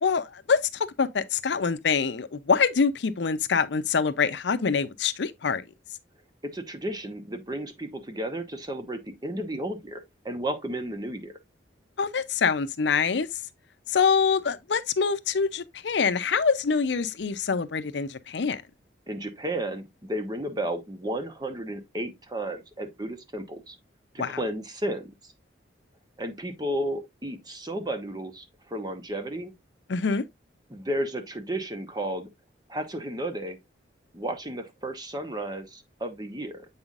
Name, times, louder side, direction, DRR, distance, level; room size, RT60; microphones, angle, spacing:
voice 1, 0.0-5.6 12.0-13.3 13.9-18.6 24.2-24.4 29.9-30.2, left 5 dB, 65° left, 0.5 m, -25 dB
voice 2, 6.4-11.4 19.1-23.8 24.1-25.3 26.2-29.5 30.7-32.3 32.7-33.6 34.1-36.7, right 1 dB, 20° right, 1.0 m, -33 dB
7.9 x 5.6 x 2.4 m
head